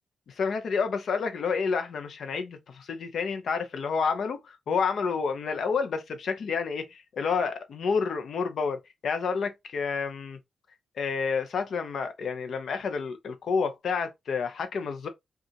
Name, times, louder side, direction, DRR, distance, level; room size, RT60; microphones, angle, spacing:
voice 1, 0.3-10.4 11.0-15.1, left 5 dB, 65° left, 0.8 m, -29 dB
5.2 x 2.5 x 2.9 m
wide cardioid pair, 130°, 0 cm